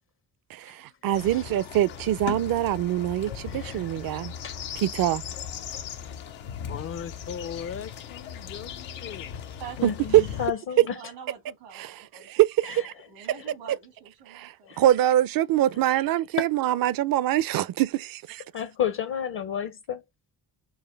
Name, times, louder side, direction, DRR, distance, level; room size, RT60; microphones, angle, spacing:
voice 1, 0.5-4.3 4.8-5.2 10.1-10.2 11.8-11.9 12.3-12.9 14.3-14.5 14.8-18.4, right 13 dB, 50° right, 0.5 m, -24 dB
voice 2, 1.0-1.4 3.4-3.9 4.4-4.6 9.8-11.0 12.6-13.1 13.4-13.5 14.6-14.8 15.7-16.0 18.5-20.0, left 8 dB, 55° left, 0.8 m, -33 dB
sound 1, 1.1-10.5, left 8 dB, 80° left, 0.8 m, -38 dB
voice 3, 6.7-9.4, left 8 dB, 30° left, 0.4 m, -38 dB
voice 4, 9.6-12.4 12.7-14.8, right 7 dB, 85° right, 1.6 m, -46 dB
4.7 x 2.1 x 3.2 m
supercardioid pair, 50°, 46 cm